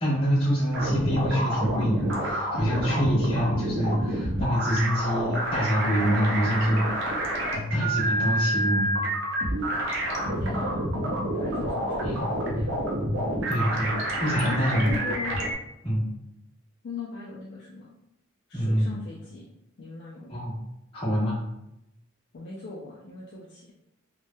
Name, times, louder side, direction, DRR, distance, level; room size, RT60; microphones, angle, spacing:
voice 1, 0.0-7.2 7.7-8.9 12.0-12.2 13.5-13.9 14.2-14.9 15.8-16.1 18.5-19.0 20.3-20.5 20.9-21.4, equal, 25° left, -9 dB, 1.0 m, -26 dB
sound 1, 0.7-15.5, right 1 dB, 60° right, 0.5 m, -28 dB
voice 2, 10.1-10.9 11.3-12.8 14.3-15.4 16.8-17.9 18.5-19.5 19.8-20.4 22.3-23.9, left 3 dB, 50° left, -5 dB, 0.3 m, -39 dB
3.1 x 2.1 x 2.2 m, 0.83 s
head